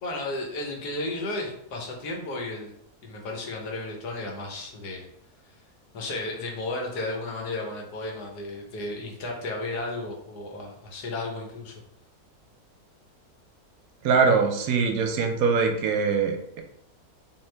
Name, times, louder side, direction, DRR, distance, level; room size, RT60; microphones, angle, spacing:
voice 1, 0.0-2.7 3.0-5.0 5.9-11.7, left 2 dB, 85° left, 1 dB, 1.4 m, -33 dB
voice 2, 14.0-16.6, right 5 dB, 70° right, 4 dB, 1.0 m, -23 dB
3.7 x 2.8 x 3.2 m, 0.77 s
omnidirectional pair, 1.7 m